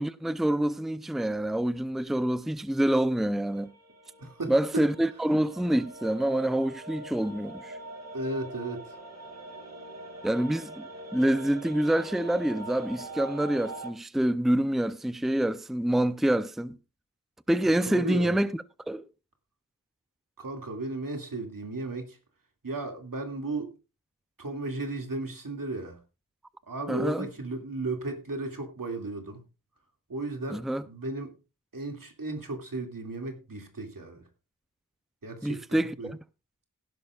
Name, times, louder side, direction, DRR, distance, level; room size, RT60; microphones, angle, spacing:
voice 1, 0.0-3.7 4.5-7.8 10.2-16.8 17.5-18.5 18.9-19.0 26.9-27.3 30.5-30.8 35.4-36.2, right 1 dB, ahead, 0.6 m, -27 dB
sound 1, 3.5-13.9, right 2 dB, 50° right, 2.6 m, -43 dB
voice 2, 4.2-4.5 8.1-9.0 17.9-18.3 20.4-22.2 22.6-23.7 24.4-26.0 26.7-29.4 30.1-31.3 31.7-34.2 35.2-36.1, right 2 dB, 85° right, 2.4 m, -35 dB
17.0 x 11.0 x 2.4 m
wide cardioid pair, 60°, 33 cm